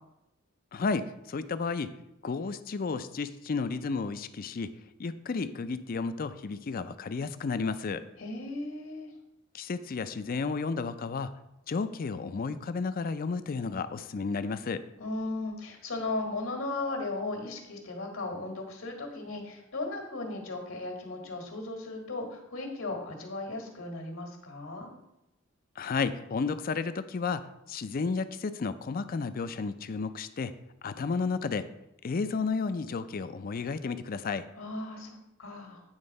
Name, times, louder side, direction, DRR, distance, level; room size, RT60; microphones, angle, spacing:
voice 1, 0.7-1.9 2.2-4.7 5.0-8.0 9.5-11.4 11.7-14.8 25.8-30.5 30.8-31.7 32.0-34.5, left 4 dB, 45° left, 12 dB, 0.4 m, -32 dB
voice 2, 8.2-9.1 15.0-24.9 34.6-35.8, left 2 dB, 75° left, 3 dB, 1.7 m, -36 dB
8.8 x 3.7 x 5.3 m, 0.87 s
head